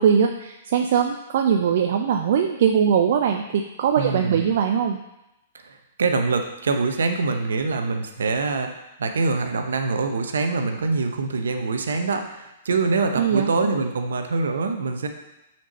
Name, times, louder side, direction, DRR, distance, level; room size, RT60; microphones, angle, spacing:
voice 1, 0.0-5.0 13.2-13.5, right 7 dB, 55° right, 4 dB, 0.4 m, -21 dB
voice 2, 4.0-4.5 5.6-15.1, right 4 dB, 70° right, 6 dB, 0.8 m, -24 dB
6.1 x 4.4 x 5.2 m, 0.92 s
figure-of-eight pair, 115°, 0 cm